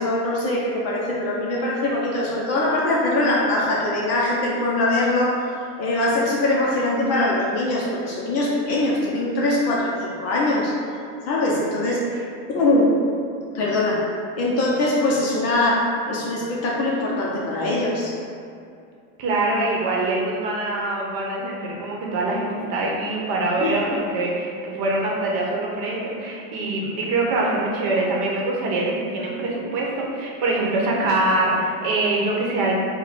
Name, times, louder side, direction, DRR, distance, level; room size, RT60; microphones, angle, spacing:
voice 1, 0.0-5.4 5.8-10.7 11.3-12.1 12.5-13.0 13.5-14.1 14.4-18.1 23.6-23.7, left 2 dB, 35° left, -4 dB, 0.5 m, -22 dB
voice 2, 19.2-32.8, right 2 dB, 50° right, -2 dB, 0.9 m, -24 dB
4.5 x 2.2 x 4.0 m, 2.4 s
supercardioid pair, 140°, 49 cm